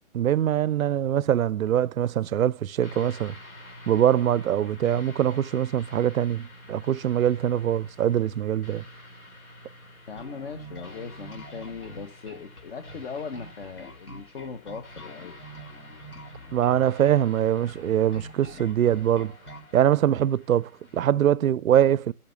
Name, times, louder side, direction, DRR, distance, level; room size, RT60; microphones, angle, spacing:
voice 1, 0.1-3.3 3.9-8.8 16.5-19.3 19.7-22.1, right 10 dB, 70° right, 0.5 m, -23 dB
sound 1, 2.8-21.1, left 1 dB, 65° left, 3.8 m, -48 dB
voice 2, 10.1-15.3, left 5 dB, 40° left, 1.2 m, -39 dB
Bass guitar, 10.2-19.7, right 1 dB, 90° left, 4.0 m, -45 dB
12.5 x 5.6 x 7.0 m
figure-of-eight pair, 140°, 44 cm